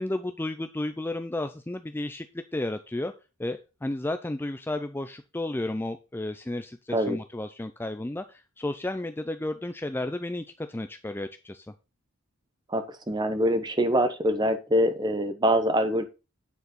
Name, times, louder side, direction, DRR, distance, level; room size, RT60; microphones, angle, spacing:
voice 1, 0.0-2.3 2.5-3.1 3.4-11.7, left 1 dB, 10° left, 9 dB, 0.4 m, -32 dB
voice 2, 12.7-16.1, equal, 20° right, 9 dB, 0.9 m, -24 dB
9.4 x 4.6 x 5.5 m, 0.30 s
head